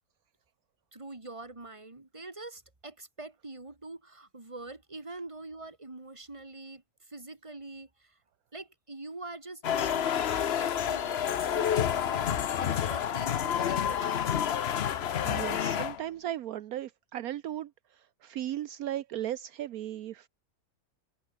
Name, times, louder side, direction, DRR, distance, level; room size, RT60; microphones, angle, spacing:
voice 1, 0.9-8.2 8.5-12.3 12.6-14.4, right 2 dB, 20° right, 2.5 m, -45 dB
sound 1, 9.6-16.0, left 9 dB, 50° left, 0.9 m, -29 dB
voice 2, 15.2-20.3, right 12 dB, 75° right, 1.2 m, -36 dB
omnidirectional pair, 1.6 m